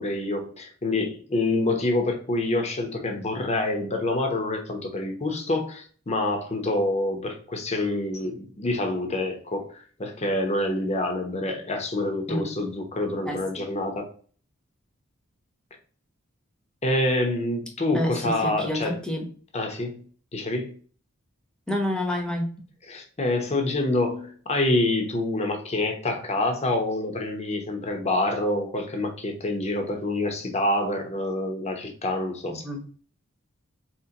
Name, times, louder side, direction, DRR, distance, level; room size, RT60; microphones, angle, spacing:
voice 1, 0.0-14.1 16.8-19.0 19.5-20.0 20.3-20.7 22.9-32.6, left 2 dB, 35° left, 3 dB, 0.8 m, -27 dB
voice 2, 17.9-19.3 21.7-22.5 32.5-32.8, left 1 dB, 5° left, 2 dB, 0.9 m, -28 dB
4.4 x 3.0 x 2.9 m, 0.43 s
head